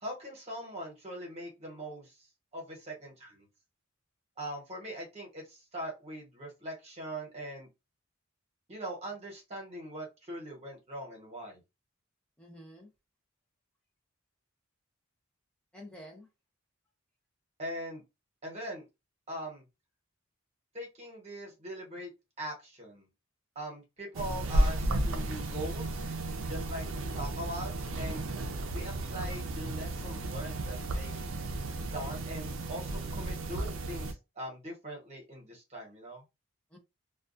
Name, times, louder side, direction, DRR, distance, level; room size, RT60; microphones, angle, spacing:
voice 1, 0.0-2.3 2.5-3.5 4.4-7.7 8.7-11.6 17.6-18.0 18.4-18.8 19.3-19.6 20.7-22.1 22.4-23.1 23.5-26.1 26.5-28.3 28.7-31.3 31.9-36.2, right 1 dB, 30° right, 1.0 m, -41 dB
voice 2, 12.4-12.9 15.7-16.3 28.1-28.5 33.3-33.4 36.7-36.8, equal, 5° left, 0.5 m, -50 dB
sound 1, 24.1-34.1, right 1 dB, 70° right, 0.5 m, -33 dB
2.3 x 2.2 x 2.5 m
head